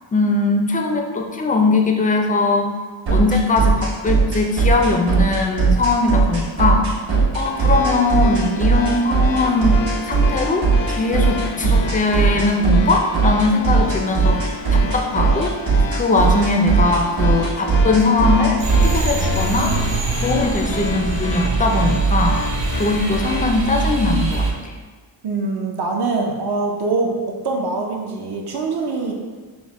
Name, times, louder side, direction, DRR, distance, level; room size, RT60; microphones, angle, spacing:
voice 1, 0.1-2.7 3.1-6.9 7.3-19.7 20.2-22.4 22.7-24.7, left 3 dB, 20° left, 2 dB, 0.3 m, -20 dB
sound 1, 3.1-19.0, right 4 dB, 70° right, 1.3 m, -17 dB
sound 2, 7.4-23.4, left 4 dB, 70° left, 0.5 m, -30 dB
sound 3, 18.6-24.5, right 3 dB, 90° right, 0.9 m, -22 dB
voice 2, 25.2-27.2 27.4-29.1, right 3 dB, 55° right, 0 dB, 0.6 m, -23 dB
6.1 x 2.1 x 3.5 m, 1.4 s
wide cardioid pair, 135°, 46 cm